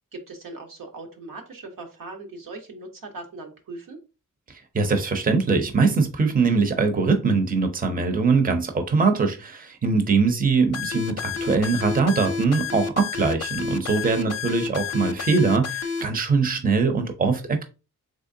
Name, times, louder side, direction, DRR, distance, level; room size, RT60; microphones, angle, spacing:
voice 1, 0.1-4.0 13.9-14.4, right 3 dB, 80° right, 3 dB, 1.0 m, -39 dB
voice 2, 4.7-17.6, right 4 dB, 25° right, 6 dB, 0.6 m, -22 dB
sound 1, 10.7-16.0, left 5 dB, 50° left, 0.5 m, -30 dB
3.6 x 3.2 x 2.6 m, 0.31 s
wide cardioid pair, 100°, 33 cm